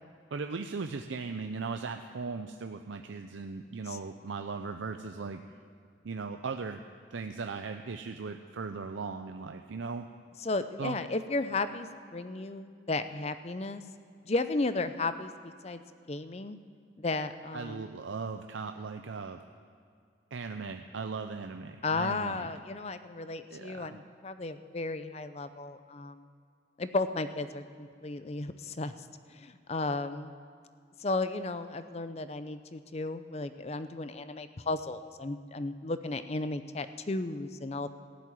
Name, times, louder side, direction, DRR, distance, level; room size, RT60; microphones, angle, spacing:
voice 1, 0.3-5.4 6.0-6.8 7.1-10.1 10.8-11.0 17.5-19.4 20.3-22.5 23.5-24.0, right 4 dB, 85° right, 6 dB, 0.6 m, -38 dB
voice 2, 10.4-13.8 14.2-15.8 16.1-16.6 17.0-17.8 21.8-26.2 26.8-28.9 29.3-30.4 31.0-37.9, left 3 dB, 35° left, 11 dB, 0.5 m, -34 dB
14.5 x 7.6 x 9.5 m, 2.2 s
head